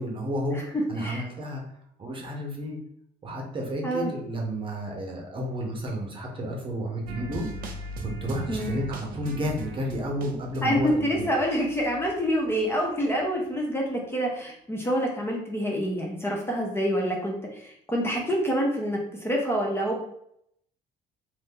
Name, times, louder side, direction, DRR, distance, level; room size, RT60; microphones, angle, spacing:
voice 1, 0.0-1.6 2.0-2.8 3.2-7.5 8.2-11.2, equal, 30° right, 0 dB, 0.9 m, -31 dB
sound 1, 7.1-12.9 13.1-13.2, right 2 dB, 60° right, 0.6 m, -39 dB
voice 2, 10.6-20.0, equal, 15° left, -1 dB, 0.7 m, -27 dB
2.7 x 2.6 x 3.6 m, 0.73 s
cardioid pair, 110°, 17 cm